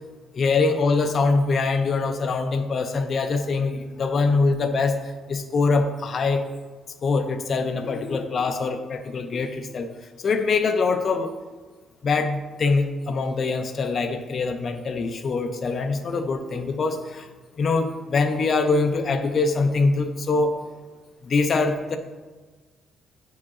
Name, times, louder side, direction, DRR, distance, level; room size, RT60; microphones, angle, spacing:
voice 1, 0.3-5.0 5.3-6.4 7.0-9.9 10.2-11.3 12.0-17.3 17.6-20.5 21.2-22.0, left 4 dB, 50° left, 6 dB, 0.5 m, -23 dB
9.6 x 4.8 x 2.5 m, 1.3 s
cardioid pair, 90°, 0 cm